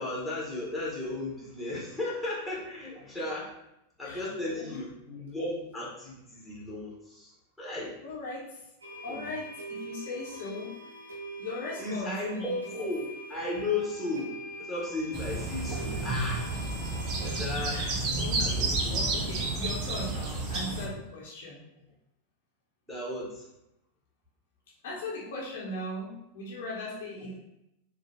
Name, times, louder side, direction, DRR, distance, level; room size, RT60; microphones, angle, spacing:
voice 1, 0.0-3.5 4.0-7.3 7.6-8.0 9.1-9.2 11.8-16.4 17.2-17.8 18.4-19.0 22.9-23.5, left 2 dB, ahead, -7 dB, 1.4 m, -35 dB
voice 2, 4.0-4.7 8.0-8.6 9.0-10.7 11.4-12.5 17.7-21.6 24.8-27.4, left 2 dB, 55° left, -5 dB, 1.0 m, -39 dB
sound 1, 8.8-17.4, right 1 dB, 80° right, 0.8 m, -43 dB
sound 2, 15.1-20.9, right 2 dB, 35° right, 0.7 m, -31 dB
4.1 x 2.4 x 2.9 m, 0.83 s
figure-of-eight pair, 90°, 0 cm